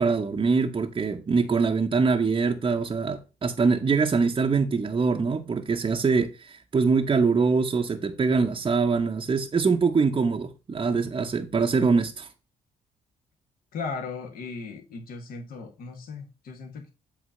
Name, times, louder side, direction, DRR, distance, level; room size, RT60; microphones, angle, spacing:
voice 1, 0.0-12.3, right 4 dB, 30° right, 0.8 m, -24 dB
voice 2, 13.7-16.9, left 4 dB, 65° left, 1.4 m, -37 dB
8.1 x 3.0 x 5.3 m
hypercardioid pair, 55°, 16 cm